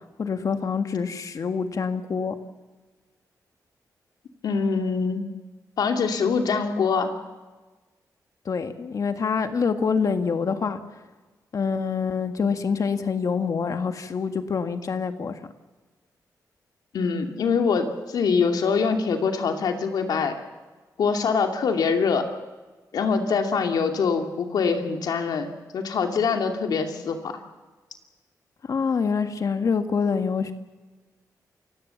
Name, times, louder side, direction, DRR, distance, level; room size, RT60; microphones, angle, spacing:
voice 1, 0.2-2.4 8.5-10.8 11.5-15.4 28.6-30.5, left 5 dB, 55° left, 8 dB, 1.8 m, -26 dB
voice 2, 4.4-5.3 5.8-7.1 16.9-20.4 21.0-22.3 22.9-27.4, left 5 dB, 85° left, 4 dB, 2.7 m, -24 dB
28.0 x 17.0 x 7.2 m, 1.3 s
wide cardioid pair, 120°, 7 cm